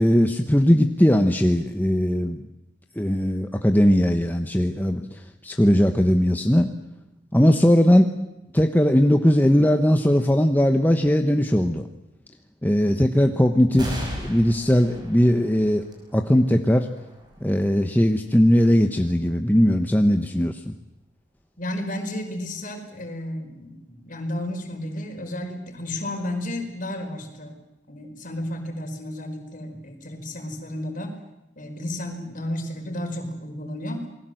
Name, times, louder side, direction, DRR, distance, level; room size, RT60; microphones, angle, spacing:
voice 1, 0.0-2.4 3.0-6.7 7.3-8.1 8.5-11.8 12.6-15.8 16.1-16.9 17.4-20.7, equal, 10° left, 5 dB, 1.0 m, -19 dB
sound 1, 13.8-20.7 21.3-21.4 22.5-23.1, equal, 25° right, 6.2 m, -39 dB
voice 2, 21.6-27.6 27.9-31.1 31.6-34.1, left 1 dB, 45° left, 5 dB, 4.9 m, -32 dB
28.5 x 20.5 x 7.8 m, 0.94 s
head